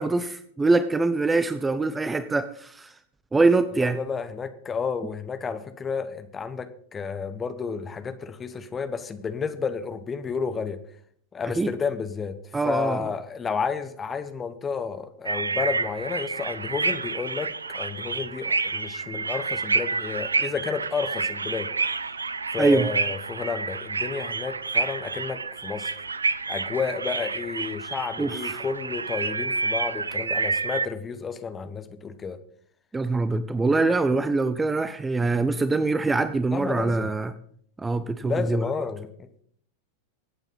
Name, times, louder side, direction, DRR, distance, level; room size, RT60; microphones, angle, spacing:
voice 1, 0.0-2.9 3.3-4.0 11.6-11.7 12.5-13.1 22.6-22.9 28.2-28.6 32.9-37.3 37.8-38.7, right 3 dB, 10° right, 12 dB, 0.8 m, -24 dB
voice 2, 3.8-10.8 11.3-12.4 12.6-21.7 22.5-25.9 26.5-32.4 36.5-37.1 38.2-39.3, left 5 dB, 20° left, 10 dB, 1.4 m, -31 dB
sound 1, 15.2-30.9, right 4 dB, 75° right, 0.6 m, -29 dB
23.0 x 8.9 x 4.1 m, 0.62 s
figure-of-eight pair, 90°, 0 cm